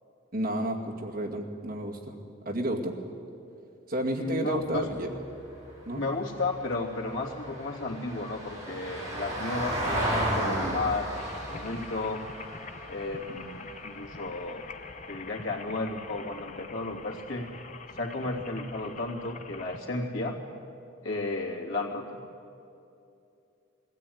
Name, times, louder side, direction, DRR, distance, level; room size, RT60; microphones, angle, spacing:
voice 1, 0.3-2.1 2.5-3.0 3.9-5.1 5.9-6.0 10.4-10.8, right 1 dB, 45° right, -1 dB, 2.2 m, -31 dB
voice 2, 4.1-4.9 5.9-11.1 11.5-12.2 12.9-14.6 15.1-17.5 17.9-20.4 21.0-22.2, left 2 dB, 80° left, -1 dB, 2.9 m, -33 dB
Vehicle, 4.6-15.1 17.4-17.5, right 1 dB, 20° right, 5.4 m, -35 dB
sound 1, 11.1-19.8, left 4 dB, 35° left, 0.9 m, -45 dB
21.0 x 16.0 x 9.5 m, 2.7 s
head